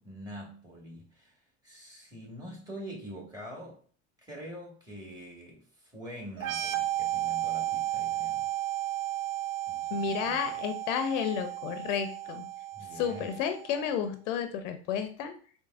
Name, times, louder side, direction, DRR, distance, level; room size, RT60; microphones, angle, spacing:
voice 1, 0.0-1.4 1.6-3.8 4.2-8.5 9.7-10.4 12.7-13.3, equal, 10° right, -3 dB, 1.6 m, -45 dB
sound 1, 6.4-13.9, right 14 dB, 70° right, 0.6 m, -34 dB
voice 2, 9.9-12.4 13.0-15.3, left 8 dB, 85° left, 8 dB, 0.6 m, -31 dB
4.8 x 2.0 x 2.4 m, 0.43 s
supercardioid pair, 90°, 36 cm